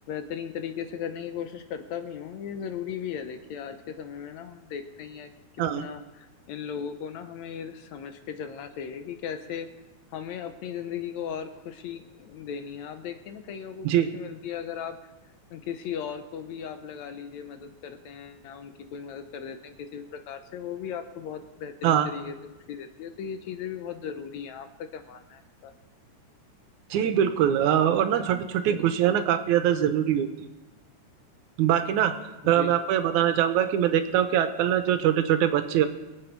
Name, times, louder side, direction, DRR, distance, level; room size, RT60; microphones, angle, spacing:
voice 1, 0.1-5.3 5.7-9.7 10.1-15.1 15.5-22.4 22.7-25.7 32.4-32.8, left 8 dB, 75° left, 8 dB, 2.0 m, -37 dB
voice 2, 26.9-30.5 31.6-32.1 32.4-35.9, right 10 dB, 80° right, 9 dB, 2.1 m, -23 dB
22.0 x 8.0 x 4.5 m, 1.1 s
omnidirectional pair, 3.5 m